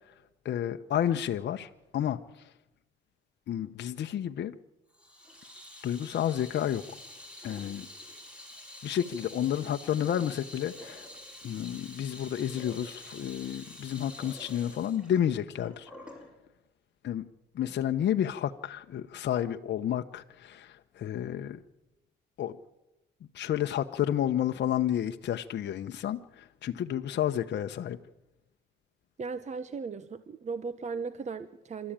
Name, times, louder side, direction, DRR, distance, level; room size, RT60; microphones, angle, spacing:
voice 1, 0.4-2.5 3.5-4.6 5.8-6.8 7.4-7.9 8.8-11.1 11.4-15.9 17.0-17.3 17.5-21.6 22.4-22.6 23.3-28.0, left 10 dB, 60° left, 6 dB, 0.9 m, -31 dB
Water tap faucet / Sink (filling or washing), 4.9-16.3, left 1 dB, 5° right, 6.6 m, -48 dB
voice 2, 29.2-31.9, right 5 dB, 35° right, 13 dB, 1.0 m, -37 dB
27.0 x 13.0 x 8.9 m, 1.0 s
cardioid pair, 90°, 20 cm